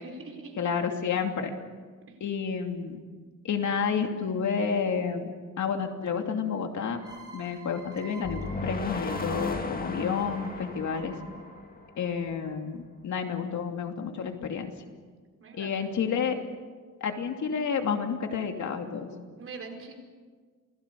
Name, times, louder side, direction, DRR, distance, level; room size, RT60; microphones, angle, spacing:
voice 1, 0.0-0.6 2.1-2.2 10.6-11.3 15.4-16.1 19.4-19.9, right 3 dB, 45° right, 2 dB, 5.0 m, -45 dB
voice 2, 0.6-1.5 2.2-3.0 3.4-7.0 7.3-11.2 12.0-14.7 15.5-16.4 17.0-19.1, left 6 dB, 70° left, 4 dB, 2.7 m, -30 dB
sound 1, 7.0-12.5, right 2 dB, 15° right, 7.1 m, -48 dB
sound 2, 8.2-12.3, left 3 dB, 30° left, 2.0 m, -36 dB
28.0 x 20.0 x 7.0 m, 1.5 s
wide cardioid pair, 135°, 30 cm